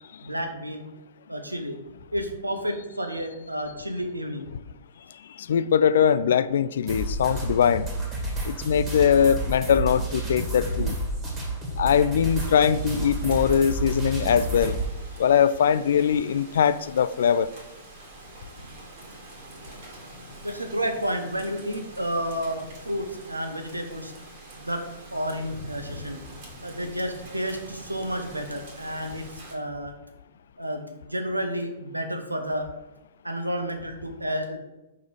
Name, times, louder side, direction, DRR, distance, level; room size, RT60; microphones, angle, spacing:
voice 1, 0.2-0.8 1.3-1.8 2.1-4.5 18.6-18.7 20.4-24.1 24.6-24.8 25.1-26.2 26.6-29.9 30.6-32.7 33.2-34.6, equal, 85° right, 5 dB, 0.9 m, -31 dB
voice 2, 5.4-7.9 8.4-11.0 11.8-14.8 15.2-17.5, left 8 dB, 55° left, 15 dB, 0.3 m, -21 dB
sound 1, 6.9-14.9, right 2 dB, 20° right, 1.7 m, -30 dB
Rain, 12.2-29.5, right 1 dB, 45° right, 1.7 m, -45 dB
5.3 x 4.8 x 4.6 m, 0.98 s
figure-of-eight pair, 110°, 0 cm